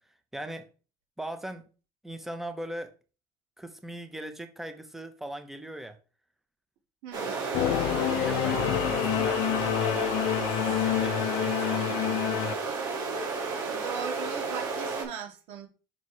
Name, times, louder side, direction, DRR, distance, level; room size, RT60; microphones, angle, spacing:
voice 1, 0.3-0.7 1.2-1.7 2.0-2.9 3.6-6.0 7.2-10.4 10.8-12.7, right 1 dB, 5° right, 0.9 m, -40 dB
voice 2, 7.0-7.4 13.5-15.7, right 6 dB, 70° right, 2.3 m, -39 dB
sound 1, 7.1-15.0, right 4 dB, 45° right, 3.3 m, -32 dB
Singing / Musical instrument, 7.5-12.6, left 14 dB, 60° left, 0.4 m, -27 dB
5.8 x 4.7 x 4.7 m
cardioid pair, 150°, 10 cm